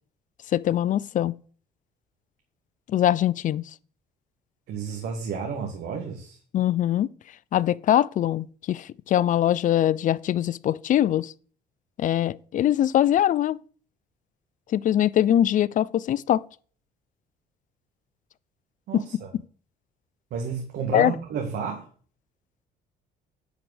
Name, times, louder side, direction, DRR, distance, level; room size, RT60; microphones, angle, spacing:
voice 1, 0.5-1.3 2.9-3.6 6.5-7.1 7.5-11.3 12.0-13.6 14.7-16.4 18.9-19.0 20.9-21.1, left 11 dB, 50° left, 0.5 m, -22 dB
voice 2, 4.7-6.4 18.9-19.3 20.3-21.9, right 6 dB, 70° right, 2.0 m, -31 dB
10.5 x 4.9 x 8.0 m
cardioid pair, 110°, 17 cm